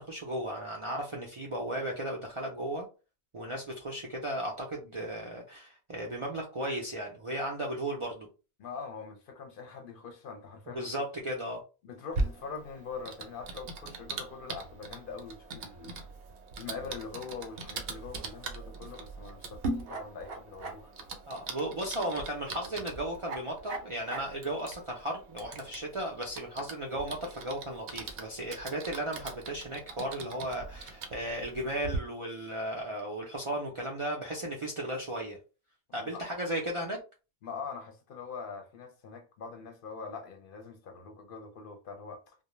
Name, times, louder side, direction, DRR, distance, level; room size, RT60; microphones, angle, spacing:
voice 1, 0.0-2.9 3.3-8.3 10.7-11.6 21.3-35.4 35.9-37.0, right 1 dB, 45° right, 0.4 m, -35 dB
voice 2, 8.6-10.9 11.8-16.0 16.6-20.9 35.9-36.2 37.4-42.3, left 5 dB, 65° left, 0.7 m, -43 dB
Typing, 12.1-32.0, right 3 dB, 70° right, 0.8 m, -41 dB
2.2 x 2.0 x 3.0 m
omnidirectional pair, 1.1 m